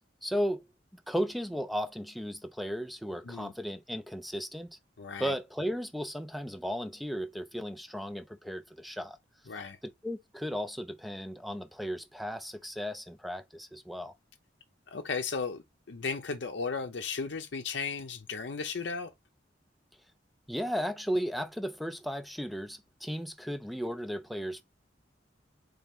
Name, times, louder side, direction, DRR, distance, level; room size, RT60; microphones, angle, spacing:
voice 1, 0.2-4.8 5.2-9.2 9.8-14.1 20.5-24.6, equal, ahead, 0.4 m, -35 dB
voice 2, 5.0-5.3 9.5-9.8 14.9-19.1, left 5 dB, 75° left, 0.6 m, -35 dB
4.2 x 3.4 x 3.6 m
head